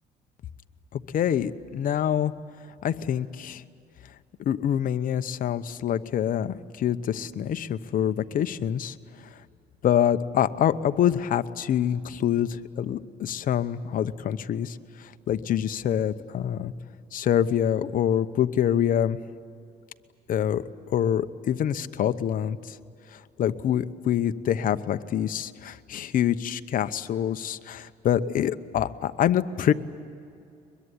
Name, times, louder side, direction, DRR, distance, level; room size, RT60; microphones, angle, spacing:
voice 1, 0.9-2.3 2.8-3.6 4.5-8.9 9.8-14.8 15.3-16.7 17.1-19.2 20.3-20.6 20.9-22.8 23.4-29.7, left 10 dB, 55° left, 11 dB, 1.0 m, -25 dB
23.0 x 22.0 x 9.9 m, 2.5 s
cardioid pair, 110°, 17 cm